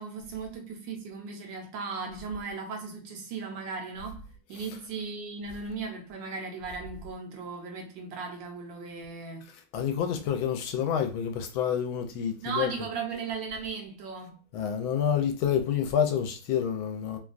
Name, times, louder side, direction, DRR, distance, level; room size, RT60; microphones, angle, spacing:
voice 1, 0.0-9.5 12.4-14.5, right 4 dB, 70° right, 1.2 m, -37 dB
voice 2, 9.7-12.7 14.5-17.2, left 8 dB, 80° left, 1.3 m, -28 dB
3.3 x 2.2 x 2.4 m
omnidirectional pair, 2.2 m